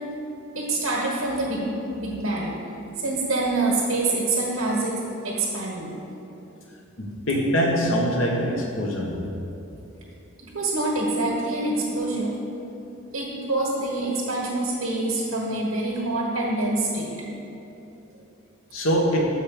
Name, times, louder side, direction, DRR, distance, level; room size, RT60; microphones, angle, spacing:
voice 1, 0.5-2.5 2.9-5.0 5.2-5.9 10.4-12.4 13.1-17.1, right 2 dB, 90° right, -3 dB, 1.4 m, -26 dB
voice 2, 7.0-9.1 18.7-19.2, equal, 75° left, -1 dB, 1.2 m, -23 dB
7.9 x 5.4 x 5.0 m, 2.9 s
head